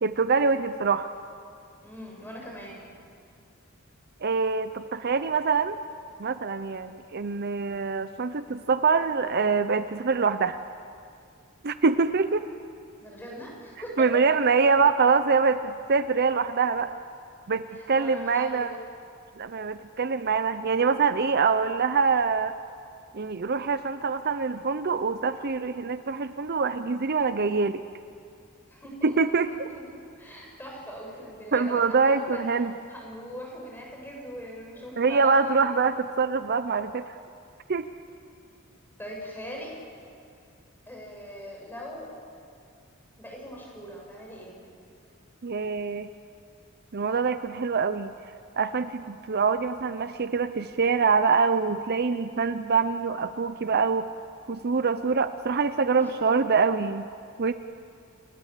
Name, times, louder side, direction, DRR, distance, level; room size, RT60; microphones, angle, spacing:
voice 1, 0.0-1.1 4.2-5.8 6.2-10.6 11.6-12.5 14.0-16.9 17.5-18.7 19.4-22.5 23.1-27.8 29.0-29.5 31.5-32.7 35.0-37.2 37.7-37.9 45.4-46.1 46.9-48.1 48.6-54.1 54.5-57.1 57.4-57.5, right 5 dB, 50° right, 11 dB, 0.7 m, -24 dB
voice 2, 1.8-2.8 13.0-14.1 17.7-18.8 28.7-29.1 29.5-32.4 32.9-35.8 39.0-39.8 40.8-42.1 43.2-44.6 55.9-56.1, equal, 10° left, -2 dB, 6.8 m, -41 dB
29.5 x 19.5 x 7.5 m, 2.4 s
head